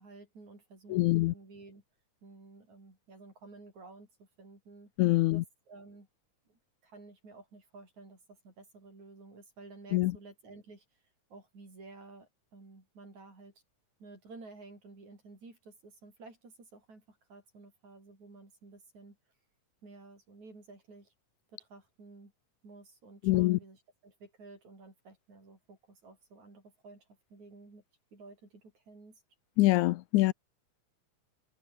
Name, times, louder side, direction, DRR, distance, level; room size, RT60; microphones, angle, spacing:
voice 1, 0.0-1.8 2.2-4.9 5.3-6.1 6.5-10.9 11.3-13.5 14.0-19.2 19.8-21.1 21.5-22.3 22.6-27.8 28.1-29.2, right 3 dB, 65° right, 9.3 m, -53 dB
voice 2, 0.9-1.3 5.0-5.4 9.9-10.1 23.2-23.6 29.6-30.3, left 18 dB, 85° left, 2.0 m, -25 dB
omnidirectional pair, 3.5 m